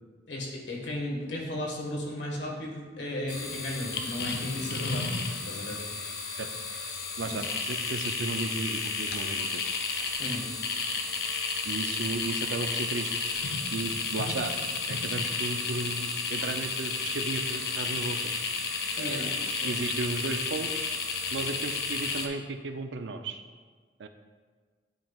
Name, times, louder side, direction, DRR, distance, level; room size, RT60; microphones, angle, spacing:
voice 1, 0.3-5.1 5.4-5.8 7.2-7.4 10.2-10.4 19.0-19.3 19.6-19.8 21.2-21.3, left 1 dB, 90° left, -2 dB, 1.6 m, -35 dB
sound 1, 3.3-22.3, left 4 dB, 60° left, 0.7 m, -32 dB
voice 2, 7.2-9.6 11.7-13.1 13.7-14.5 14.9-18.2 19.0-19.2 19.6-20.7 21.3-23.4 24.0-24.1, right 3 dB, 90° right, 7 dB, 0.5 m, -34 dB
10.0 x 5.5 x 2.4 m, 1.5 s
head